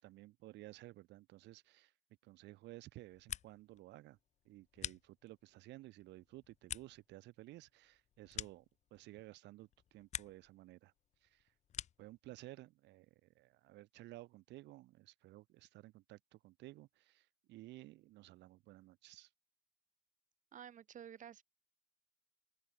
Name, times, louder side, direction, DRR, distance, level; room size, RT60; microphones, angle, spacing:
voice 1, 0.0-1.9 2.2-4.2 4.4-8.6 8.9-10.9 11.2-11.4 12.0-19.3, right 17 dB, 70° right, 6.7 m, -55 dB
sound 1, 3.0-3.8 4.1-5.5 6.0-9.2 9.6-10.5 10.8-12.2, left 10 dB, 40° left, 0.9 m, -48 dB
voice 2, 20.5-21.4, right 9 dB, 45° right, 6.9 m, -52 dB
open air
cardioid pair, 125°, 18 cm